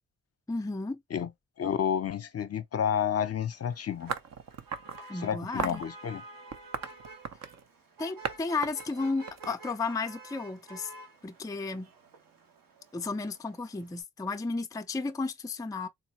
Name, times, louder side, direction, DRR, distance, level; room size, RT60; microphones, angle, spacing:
voice 1, 0.5-1.0 5.1-5.8 8.0-10.9 11.2-11.9 12.9-15.9, left 3 dB, 10° left, 0.5 m, -33 dB
voice 2, 1.6-4.1 5.2-6.2, left 8 dB, 45° left, 0.7 m, -30 dB
Motor vehicle (road), 3.5-14.0, right 2 dB, 80° right, 1.4 m, -51 dB
sound 1, 4.1-5.0 5.6-5.9 6.5-7.6 8.2-8.4 8.6-10.0, right 6 dB, 50° right, 0.6 m, -36 dB
3.9 x 2.2 x 2.9 m
supercardioid pair, 55°, 34 cm